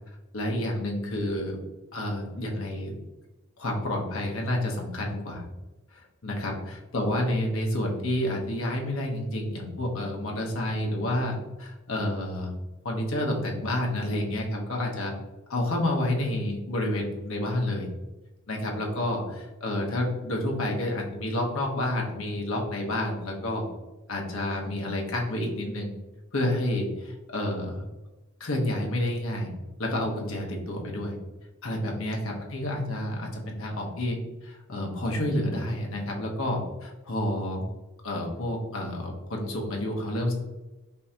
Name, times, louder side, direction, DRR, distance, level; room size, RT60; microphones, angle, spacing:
voice 1, 0.3-1.6 1.9-2.9 3.6-5.5 5.9-12.5 12.8-15.1 15.5-17.9 18.5-23.7 24.1-25.9 26.3-27.8 28.4-29.5 29.8-31.2 31.6-37.6 38.0-40.3, left 1 dB, 65° left, 0 dB, 1.0 m, -29 dB
5.3 x 2.7 x 2.8 m, 1.1 s
head